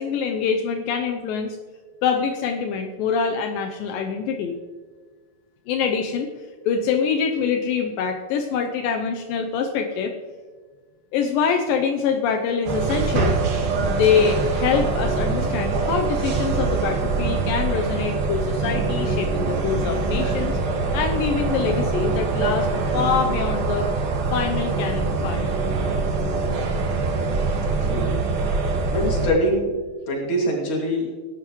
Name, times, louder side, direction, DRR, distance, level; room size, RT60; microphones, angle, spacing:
voice 1, 0.0-1.6 2.0-4.6 5.7-6.3 6.7-10.1 11.1-13.4 13.8-20.5 20.9-22.7 22.9-23.9 24.3-25.6, left 6 dB, 80° left, 4 dB, 2.4 m, -24 dB
sound 1, 12.7-29.3, right 3 dB, 90° right, 3.5 m, -24 dB
voice 2, 27.8-28.2 28.9-29.7 30.1-31.1, equal, 40° left, -1 dB, 2.9 m, -23 dB
20.0 x 11.5 x 3.1 m, 1.5 s
omnidirectional pair, 4.1 m